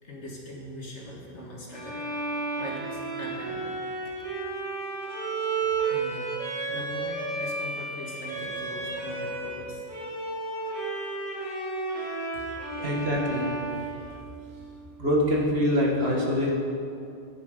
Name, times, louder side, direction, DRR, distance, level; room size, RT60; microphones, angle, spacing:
voice 1, 0.0-3.7 4.0-4.1 5.9-9.9 12.3-12.4, left 1 dB, 70° left, -2 dB, 2.1 m, -41 dB
Bowed string instrument, 1.7-9.6 9.9-14.7, right 3 dB, 75° right, 2.7 m, -32 dB
voice 2, 12.8-13.5 15.0-16.5, left 1 dB, 60° right, -2 dB, 2.0 m, -24 dB
10.5 x 9.5 x 5.2 m, 2.6 s
omnidirectional pair, 1.2 m